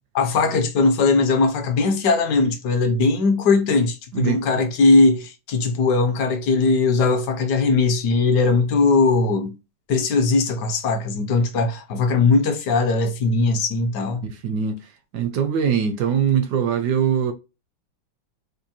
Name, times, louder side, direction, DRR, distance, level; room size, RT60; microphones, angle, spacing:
voice 1, 0.1-9.5 9.9-14.3, left 3 dB, 65° left, 1.2 m, -19 dB
voice 2, 14.2-14.8 15.1-17.3, right 8 dB, 75° right, 0.9 m, -22 dB
4.4 x 2.6 x 2.7 m
omnidirectional pair, 2.2 m